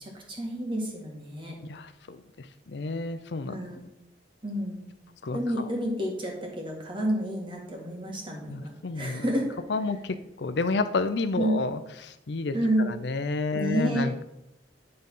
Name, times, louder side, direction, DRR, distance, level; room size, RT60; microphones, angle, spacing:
voice 1, 0.0-1.5 3.5-3.8 4.4-4.8 5.3-8.7 9.0-9.6 11.4-11.6 12.5-12.9 13.5-14.1, right 1 dB, 30° right, 0 dB, 1.8 m, -29 dB
voice 2, 1.6-3.6 5.2-5.7 8.5-9.2 9.7-14.2, left 3 dB, 65° left, 10 dB, 0.5 m, -31 dB
9.6 x 3.9 x 5.5 m, 0.86 s
head